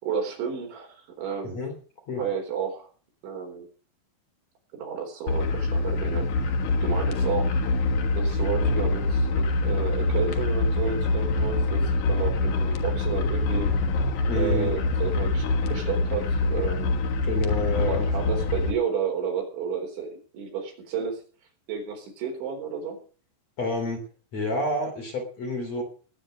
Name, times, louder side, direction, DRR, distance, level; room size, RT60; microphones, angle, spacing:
voice 1, 0.0-1.6 2.2-2.9 3.2-3.7 4.7-6.5 6.8-7.6 8.1-13.7 14.4-17.0 17.7-21.2 21.7-23.0, right 6 dB, 75° right, 2 dB, 6.3 m, -31 dB
sound 1, 5.3-18.7, left 2 dB, 60° left, 2.0 m, -25 dB
voice 2, 14.3-14.7 17.2-18.0 23.6-24.0 24.3-25.8, left 1 dB, 40° left, 2 dB, 3.6 m, -28 dB
20.5 x 8.9 x 5.1 m, 0.39 s
omnidirectional pair, 5.5 m